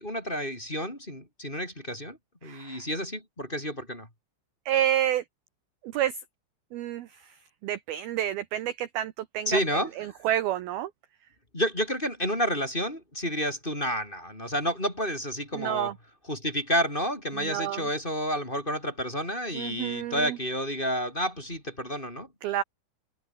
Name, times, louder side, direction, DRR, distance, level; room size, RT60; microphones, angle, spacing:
voice 1, 0.0-4.1 9.5-9.9 11.5-15.9 16.3-22.3, equal, 10° left, 4.5 m, -30 dB
voice 2, 2.4-2.8 4.7-5.2 5.8-6.2 6.7-7.3 7.6-9.6 10.0-10.9 15.5-15.9 17.3-17.8 19.5-20.4 22.4-22.6, right 11 dB, 75° right, 2.4 m, -29 dB
omnidirectional pair, 5.6 m